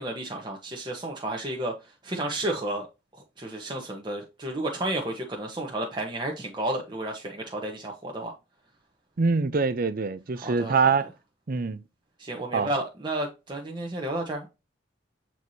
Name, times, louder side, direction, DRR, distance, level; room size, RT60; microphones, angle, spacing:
voice 1, 0.0-1.7 2.0-2.9 3.1-8.3 10.4-10.8 12.2-14.5, right 1 dB, 25° right, 1.1 m, -32 dB
voice 2, 9.2-11.1 11.5-11.8 12.5-12.7, right 4 dB, 50° right, 0.6 m, -24 dB
7.9 x 4.6 x 2.8 m
head